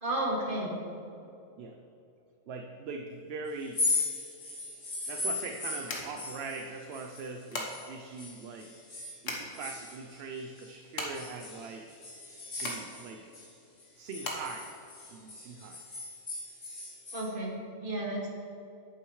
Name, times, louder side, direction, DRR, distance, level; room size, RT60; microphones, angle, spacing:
voice 1, 0.0-0.8 17.1-18.3, right 1 dB, 45° right, -2 dB, 1.8 m, -32 dB
voice 2, 2.5-3.8 5.1-8.7 9.2-11.8 12.6-13.2 14.0-14.7 15.1-15.8, right 4 dB, 65° right, 4 dB, 0.8 m, -41 dB
sound 1, 3.6-7.9 8.2-10.7 11.1-13.5 13.8-17.3, left 3 dB, 40° left, 1.8 m, -37 dB
sound 2, 4.5-15.6, left 2 dB, 85° left, 1.6 m, -42 dB
10.5 x 8.8 x 3.1 m, 2.7 s
omnidirectional pair, 1.3 m